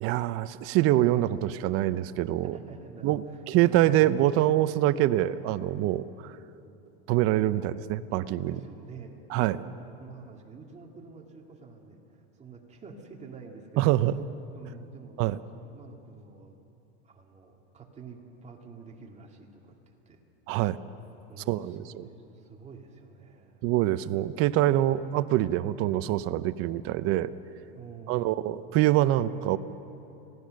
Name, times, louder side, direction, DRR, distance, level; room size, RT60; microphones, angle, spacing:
voice 1, 0.0-2.5 3.0-6.3 7.1-8.6 9.3-9.6 13.8-14.2 15.2-15.4 20.5-20.8 21.5-22.1 23.6-27.3 28.1-29.6, right 14 dB, 45° right, 15 dB, 0.7 m, -25 dB
voice 2, 2.5-4.2 8.4-13.9 14.5-16.6 17.0-19.8 20.1-20.2 21.3-23.6 27.7-28.4, right 5 dB, 20° right, 1 dB, 2.4 m, -48 dB
26.0 x 17.5 x 6.5 m, 2.9 s
supercardioid pair, 130°, 31 cm